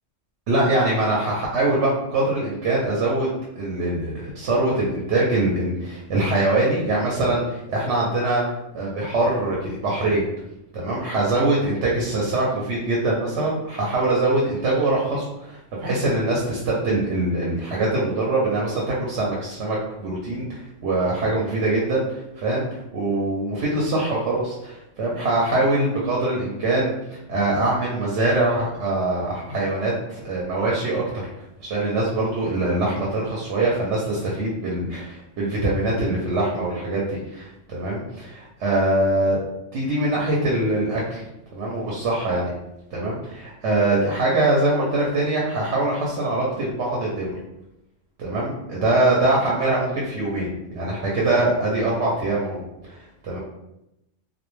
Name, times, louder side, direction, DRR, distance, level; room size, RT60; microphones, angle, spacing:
voice 1, 0.5-3.3 3.6-8.5 8.7-10.2 10.7-31.3 31.6-39.4 39.7-41.2 41.5-42.5 42.9-47.3 48.2-50.5 50.8-53.4, right 2 dB, 70° right, -4 dB, 0.8 m, -23 dB
2.2 x 2.1 x 3.0 m, 0.87 s
omnidirectional pair, 1.3 m